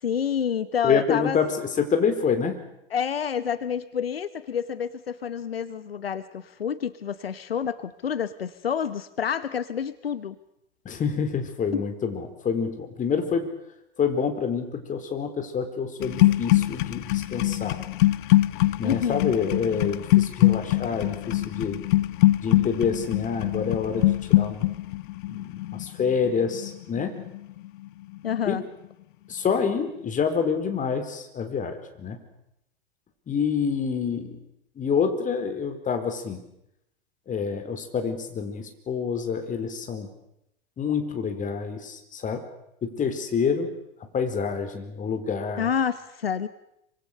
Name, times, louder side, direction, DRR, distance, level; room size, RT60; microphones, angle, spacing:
voice 1, 0.0-1.4 2.9-10.4 11.7-11.8 18.8-19.3 28.2-28.6 45.6-46.5, left 8 dB, 80° left, 15 dB, 1.0 m, -28 dB
voice 2, 0.8-2.6 10.8-13.5 14.0-17.8 18.8-21.8 22.4-24.7 25.3-27.2 28.5-28.6 29.3-32.2 33.3-34.4 34.8-36.4 37.3-40.1 40.8-42.4 42.8-43.7 44.1-45.7, left 6 dB, 25° left, 7 dB, 4.3 m, -27 dB
sound 1, 16.0-27.9 28.1-28.5, left 16 dB, 60° left, 0.9 m, -23 dB
27.0 x 25.0 x 6.7 m, 0.82 s
figure-of-eight pair, 90°, 29 cm